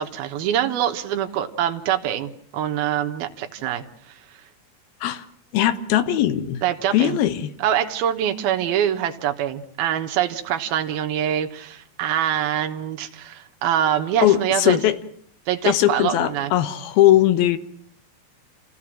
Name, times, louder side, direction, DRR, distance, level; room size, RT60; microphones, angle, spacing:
voice 1, 0.0-4.2 6.6-7.2 7.6-14.8 15.5-16.5, right 10 dB, 85° right, 5 dB, 3.2 m, -24 dB
voice 2, 5.5-6.6 6.9-7.5 14.2-15.0 15.7-17.6, left 13 dB, 85° left, 11 dB, 3.0 m, -19 dB
28.5 x 17.0 x 7.6 m, 0.62 s
omnidirectional pair, 4.3 m